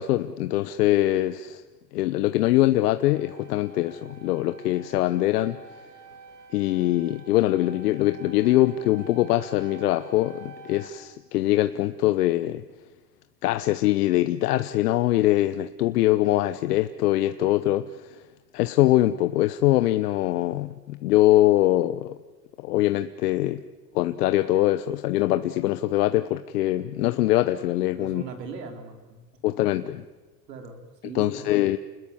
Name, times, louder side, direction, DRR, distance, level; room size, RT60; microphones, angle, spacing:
voice 1, 0.0-1.6 1.9-5.6 6.5-12.6 13.4-18.2 18.5-22.1 22.6-23.6 23.9-28.2 29.4-30.0 31.1-31.8, left 15 dB, 70° left, 11 dB, 1.1 m, -23 dB
sound 1, 3.1-10.9, right 3 dB, 40° right, 4.2 m, -47 dB
voice 2, 27.9-29.2 29.5-29.7 30.5-31.6, right 5 dB, 80° right, 5 dB, 4.4 m, -39 dB
29.5 x 20.5 x 7.3 m, 1.3 s
hypercardioid pair, 110°, 49 cm